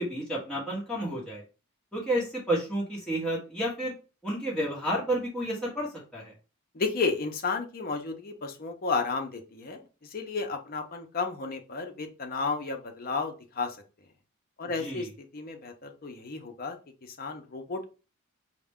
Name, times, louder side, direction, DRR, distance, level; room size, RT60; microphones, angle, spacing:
voice 1, 0.0-1.4 1.9-3.9 4.2-6.3 14.8-15.1, right 1 dB, 5° left, -6 dB, 1.2 m, -31 dB
voice 2, 6.7-13.8 14.6-15.1 15.3-17.9, left 4 dB, 40° left, 4 dB, 0.6 m, -32 dB
4.7 x 2.1 x 3.5 m, 0.34 s
head